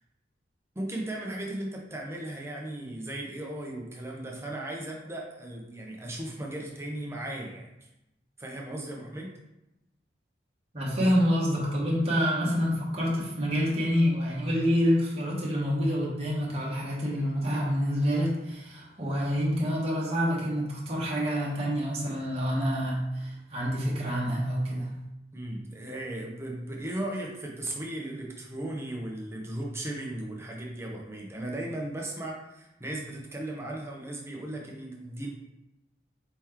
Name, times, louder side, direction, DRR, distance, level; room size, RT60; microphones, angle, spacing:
voice 1, 0.7-7.9 8.4-9.4 25.3-35.3, right 1 dB, 15° right, -1 dB, 0.7 m, -36 dB
voice 2, 10.7-25.0, equal, 35° right, -5 dB, 1.0 m, -27 dB
4.4 x 3.0 x 3.6 m, 0.91 s
head